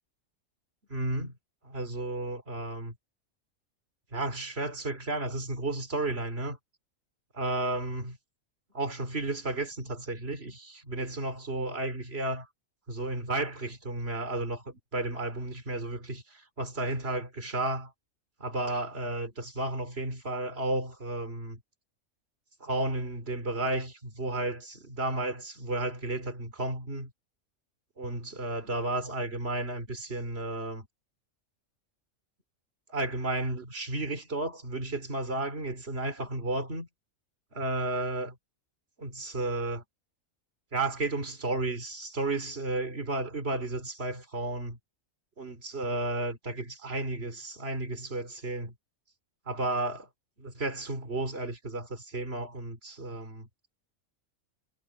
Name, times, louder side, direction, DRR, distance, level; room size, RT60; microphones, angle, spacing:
voice 1, 0.9-1.3 1.6-2.9 4.1-6.6 7.3-8.2 8.7-12.5 12.9-17.9 18.4-21.6 22.6-27.1 28.0-30.9 32.9-36.9 37.5-38.4 39.0-39.8 40.7-44.8 45.4-48.7 49.5-50.1 50.4-53.5, right 2 dB, 50° right, 3.9 m, -33 dB
omnidirectional pair, 1.4 m